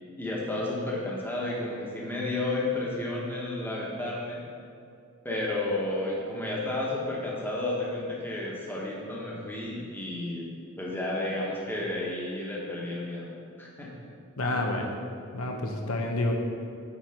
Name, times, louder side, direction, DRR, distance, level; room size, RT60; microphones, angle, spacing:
voice 1, 0.2-4.4 5.2-10.5 10.8-13.3 13.6-13.9, left 2 dB, 10° left, -4 dB, 1.2 m, -32 dB
voice 2, 14.4-15.0 15.3-16.3, left 2 dB, 80° left, 1 dB, 0.9 m, -29 dB
8.7 x 4.5 x 5.0 m, 2.5 s
head